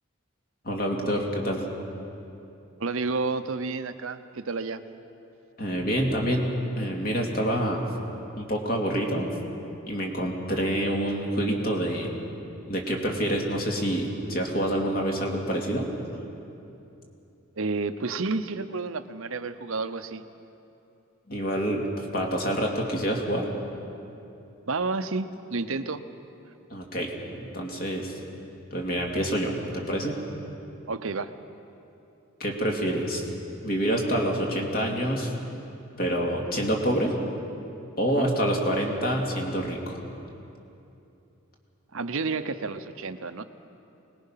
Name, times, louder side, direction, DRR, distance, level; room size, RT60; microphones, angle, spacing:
voice 1, 0.6-1.6 5.6-6.5 6.7-7.8 8.3-9.3 9.9-12.1 12.7-15.9 21.3-21.9 22.1-23.5 26.7-28.1 28.7-30.2 32.4-33.2 33.6-35.3 36.0-37.1 38.0-40.0, equal, 40° left, 0 dB, 2.5 m, -27 dB
voice 2, 2.8-4.8 17.6-20.2 24.7-26.0 30.9-31.3 38.1-38.3 41.9-43.4, right 3 dB, 65° right, 10 dB, 0.8 m, -30 dB
25.0 x 20.0 x 5.8 m, 2.8 s
head